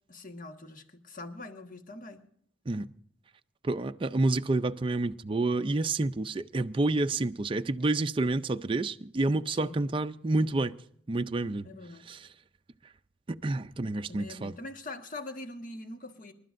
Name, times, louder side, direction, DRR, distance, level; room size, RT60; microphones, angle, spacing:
voice 1, 0.1-2.2 9.6-9.8 11.6-12.1 14.1-16.3, left 2 dB, 45° left, 1.4 m, -43 dB
voice 2, 3.6-10.7 11.1-11.7 12.1-12.3 13.3-14.5, right 2 dB, 30° right, 0.4 m, -29 dB
27.5 x 12.0 x 2.6 m
head